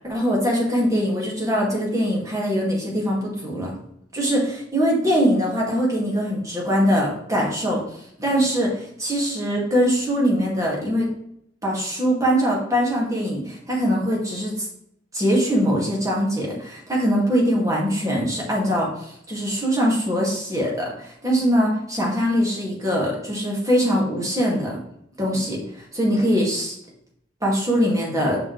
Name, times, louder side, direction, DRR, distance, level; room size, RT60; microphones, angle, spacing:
voice 1, 0.0-3.7 4.1-7.8 8.2-11.1 11.6-14.7 15.1-24.7 25.2-25.6 25.9-26.7 27.4-28.4, equal, 20° right, -3 dB, 2.3 m, -22 dB
6.2 x 5.6 x 3.3 m, 0.73 s
head